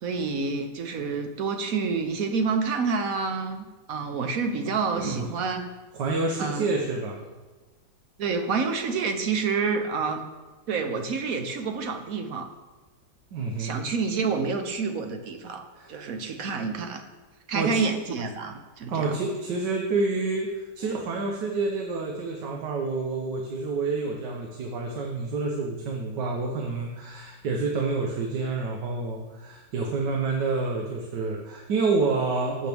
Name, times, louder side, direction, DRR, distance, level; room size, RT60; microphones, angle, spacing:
voice 1, 0.0-5.6 6.4-6.7 8.2-10.2 10.7-12.5 13.6-15.6 15.9-17.0 17.5-19.1, right 5 dB, 60° right, 6 dB, 1.2 m, -28 dB
voice 2, 4.9-5.3 5.9-7.2 13.3-13.9 15.7-16.0 17.5-17.8 18.9-32.7, right 3 dB, 75° right, 0 dB, 1.7 m, -28 dB
14.5 x 7.5 x 3.5 m, 1.2 s
omnidirectional pair, 1.9 m